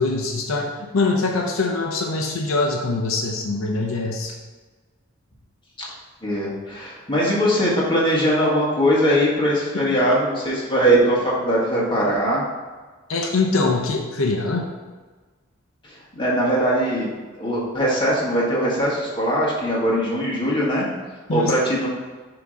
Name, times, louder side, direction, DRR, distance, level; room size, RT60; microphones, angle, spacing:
voice 1, 0.0-4.3 13.1-14.7 21.3-21.6, left 3 dB, 80° left, 0 dB, 0.7 m, -23 dB
voice 2, 6.2-12.4 16.1-17.1 17.4-20.8 21.3-21.9, equal, 25° left, -5 dB, 1.5 m, -21 dB
6.9 x 3.0 x 5.0 m, 1.3 s
head